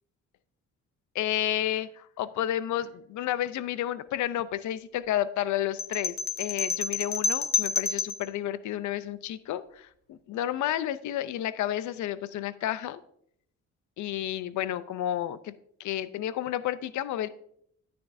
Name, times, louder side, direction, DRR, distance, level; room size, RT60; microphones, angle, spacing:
voice 1, 1.1-13.0 14.0-15.5 15.8-17.3, left 12 dB, 70° left, 15 dB, 0.6 m, -31 dB
sound 1, 5.8-8.3, left 5 dB, 35° left, 0.8 m, -29 dB
10.0 x 9.6 x 2.6 m, 0.68 s
cardioid pair, 90°, 30 cm